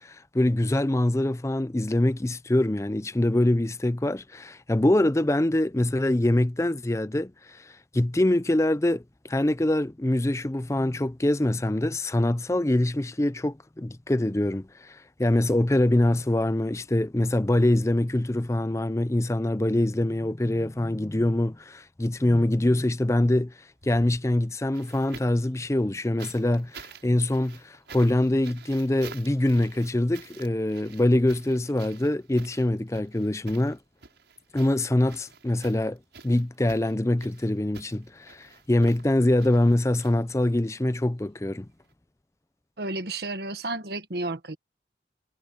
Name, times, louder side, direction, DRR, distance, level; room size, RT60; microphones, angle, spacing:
voice 1, 0.0-23.5 23.8-33.8 34.5-36.0 36.2-41.7, left 1 dB, 15° left, 0.5 m, -24 dB
sound 1, 23.7-25.5 26.2-40.7 41.8-41.9, right 5 dB, 80° right, 6.7 m, -49 dB
voice 2, 42.8-44.6, right 2 dB, 60° right, 1.5 m, -32 dB
head